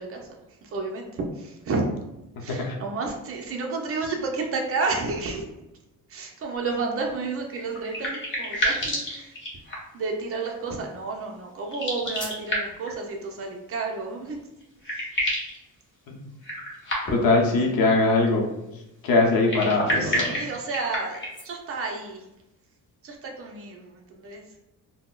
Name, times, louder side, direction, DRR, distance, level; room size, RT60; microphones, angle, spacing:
voice 1, 0.0-1.9 2.4-5.5 6.1-9.4 9.9-14.4 14.9-15.1 19.7-21.2 21.4-22.3 23.0-24.4, right 3 dB, 40° right, 1 dB, 0.5 m, -31 dB
sound 1, 7.5-10.0 11.6-12.9 14.3-14.4 14.6-15.6 16.4-17.4 19.3-21.5, equal, 30° left, 0.8 m, -29 dB
voice 2, 17.1-18.5 19.0-20.4, left 3 dB, 65° left, 0 dB, 0.7 m, -21 dB
4.0 x 2.1 x 2.3 m, 0.93 s
cardioid pair, 175°, 37 cm